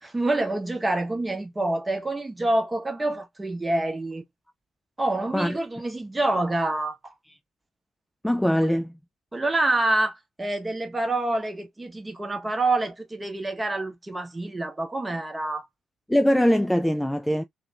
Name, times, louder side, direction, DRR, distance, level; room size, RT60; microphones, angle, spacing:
voice 1, 0.0-4.2 5.0-7.1 9.3-15.7, right 2 dB, 20° right, 0.8 m, -27 dB
voice 2, 8.2-8.9 16.1-17.4, equal, 5° left, 0.3 m, -22 dB
2.8 x 2.2 x 2.4 m
figure-of-eight pair, 45°, 0 cm